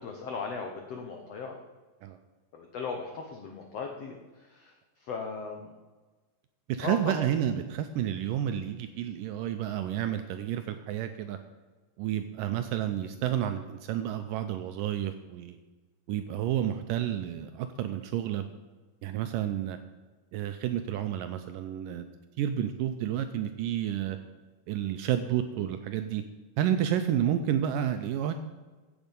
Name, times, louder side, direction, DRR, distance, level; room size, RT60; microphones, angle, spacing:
voice 1, 0.0-1.6 2.5-5.7 6.8-7.2, left 4 dB, 80° left, 3 dB, 1.4 m, -37 dB
voice 2, 6.8-11.4 12.0-15.6 16.1-18.4 19.0-19.8 20.3-22.1 22.4-24.2 24.7-26.2 26.6-28.3, right 10 dB, 80° right, 8 dB, 2.0 m, -30 dB
15.5 x 7.6 x 5.3 m, 1.3 s
omnidirectional pair, 4.4 m